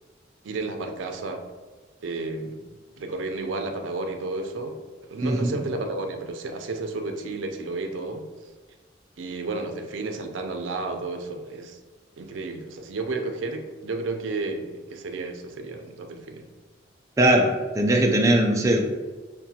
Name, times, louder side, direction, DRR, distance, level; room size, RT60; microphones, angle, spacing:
voice 1, 0.4-1.4 2.0-2.7 3.0-4.8 5.1-8.3 9.2-11.8 12.2-16.4, right 3 dB, 85° right, 5 dB, 0.5 m, -32 dB
voice 2, 5.2-5.6 17.2-18.8, right 1 dB, 15° right, 1 dB, 0.3 m, -20 dB
5.8 x 2.2 x 2.8 m, 1.3 s
head